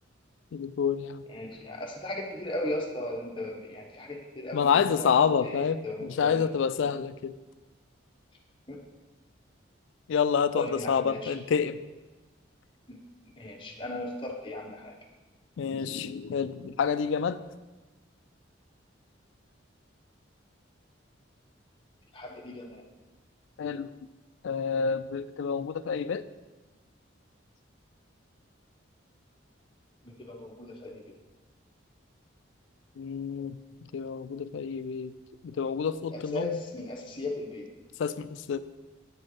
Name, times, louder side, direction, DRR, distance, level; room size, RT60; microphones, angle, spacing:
voice 1, 0.5-1.3 4.5-7.3 10.1-11.8 15.6-17.4 23.6-23.9 24.4-26.2 33.0-35.2 35.4-36.6 38.0-38.6, left 6 dB, 70° left, 14 dB, 0.3 m, -28 dB
voice 2, 1.3-5.1 5.4-6.4 8.7-8.8 10.5-11.3 12.9-13.0 13.3-14.9 15.8-16.1 22.1-22.8 30.0-31.1 36.1-37.7, left 1 dB, 25° left, 0 dB, 0.9 m, -37 dB
8.5 x 4.3 x 4.8 m, 1.2 s
head